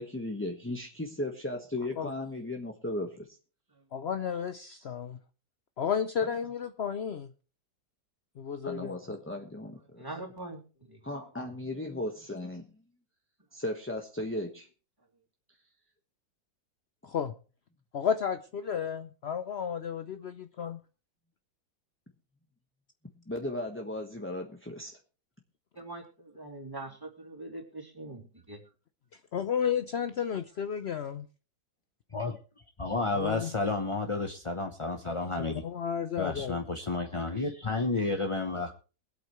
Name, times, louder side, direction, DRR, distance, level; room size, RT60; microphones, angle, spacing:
voice 1, 0.0-3.4 4.8-4.9 8.6-10.0 11.0-12.6 13.5-14.7 23.3-25.0, left 1 dB, 10° left, 1.1 m, -36 dB
voice 2, 3.9-5.2 5.8-7.3 8.4-9.0 17.0-17.3 17.9-20.8 29.3-31.3 33.1-33.5 35.5-36.6, left 7 dB, 65° left, 0.6 m, -32 dB
voice 3, 10.0-11.5 25.7-28.6, right 2 dB, 10° right, 3.0 m, -43 dB
voice 4, 32.8-35.6 36.2-38.7, left 3 dB, 25° left, 0.6 m, -31 dB
22.5 x 8.4 x 3.2 m
omnidirectional pair, 2.0 m